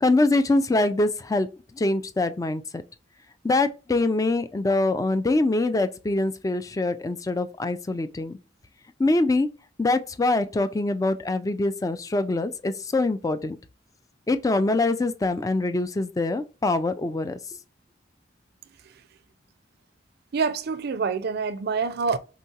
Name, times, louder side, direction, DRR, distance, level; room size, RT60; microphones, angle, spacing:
voice 1, 0.0-1.5 1.7-2.8 3.4-8.4 9.0-9.5 9.8-13.6 14.3-17.4, left 2 dB, 20° left, 0.3 m, -24 dB
voice 2, 20.3-22.2, right 5 dB, 55° right, 0.4 m, -26 dB
4.6 x 3.8 x 2.7 m
head